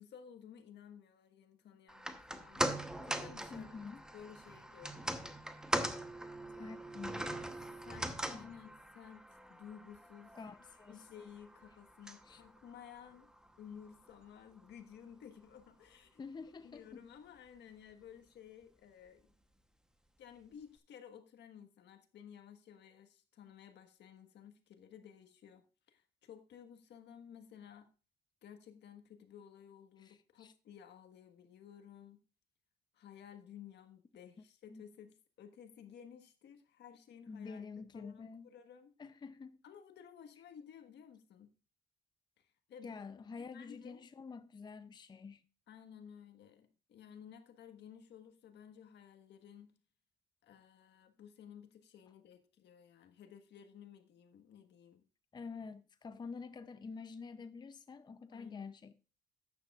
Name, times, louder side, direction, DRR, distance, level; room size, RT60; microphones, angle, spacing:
voice 1, 0.0-2.7 3.0-3.8 4.1-5.4 6.6-6.9 7.8-10.4 10.9-13.3 13.6-16.2 16.6-19.3 20.2-27.9 28.4-32.2 32.9-38.9 39.6-41.5 42.4-43.0 43.4-44.0 45.7-49.8 50.4-55.1 58.3-58.7, left 8 dB, 75° left, 1.4 m, -55 dB
sound 1, 1.9-14.3 14.6-14.7, right 1 dB, 5° right, 0.9 m, -41 dB
voice 2, 3.5-4.0 6.6-7.3 8.3-8.5 10.4-11.0 12.3-12.4 16.2-16.8 30.0-30.5 34.7-34.8 37.3-38.5 39.0-39.6 42.8-45.4 55.3-58.9, left 5 dB, 25° left, 0.5 m, -48 dB
13.0 x 9.5 x 2.4 m
cardioid pair, 110°, 18 cm